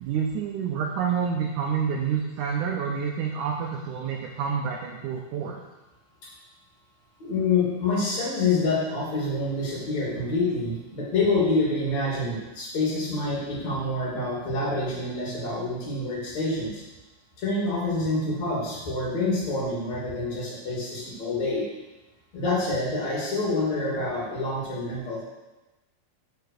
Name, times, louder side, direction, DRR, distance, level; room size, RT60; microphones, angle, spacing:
voice 1, 0.0-5.6, right 7 dB, 75° right, 0 dB, 1.9 m, -28 dB
voice 2, 7.2-16.8 17.4-21.6 22.3-25.2, left 2 dB, 50° left, -5 dB, 3.7 m, -27 dB
6.8 x 6.7 x 6.6 m, 1.1 s
omnidirectional pair, 4.2 m